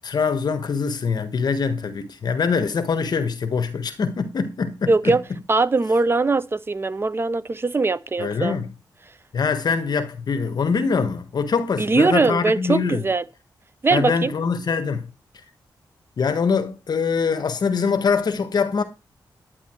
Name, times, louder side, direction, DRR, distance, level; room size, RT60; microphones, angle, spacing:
voice 1, 0.0-5.2 8.2-8.7 9.3-13.0 13.9-15.1 16.2-18.8, left 5 dB, 60° left, 1.5 m, -23 dB
voice 2, 4.9-5.2 5.5-8.6 11.8-13.2 13.8-14.3, right 3 dB, 30° right, 0.9 m, -21 dB
11.0 x 9.6 x 4.6 m
wide cardioid pair, 120°, 8 cm